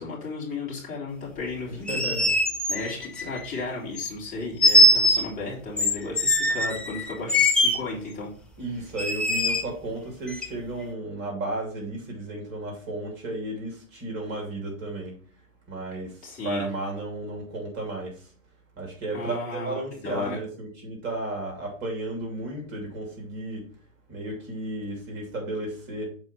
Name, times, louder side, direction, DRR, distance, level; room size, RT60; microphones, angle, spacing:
voice 1, 0.0-2.0 2.7-8.3 16.2-16.7 19.1-20.4, left 3 dB, 20° left, 3.5 m, -34 dB
sound 1, 1.7-3.5 4.0-4.1 4.6-5.3 5.8-7.8 9.0-9.6 10.3-10.5, left 1 dB, 5° left, 0.5 m, -21 dB
voice 2, 1.7-2.3 8.6-15.2 15.7-18.3 18.8-23.7 24.1-26.1, right 2 dB, 30° right, 2.8 m, -33 dB
7.2 x 4.8 x 4.4 m
hypercardioid pair, 120°, 40 cm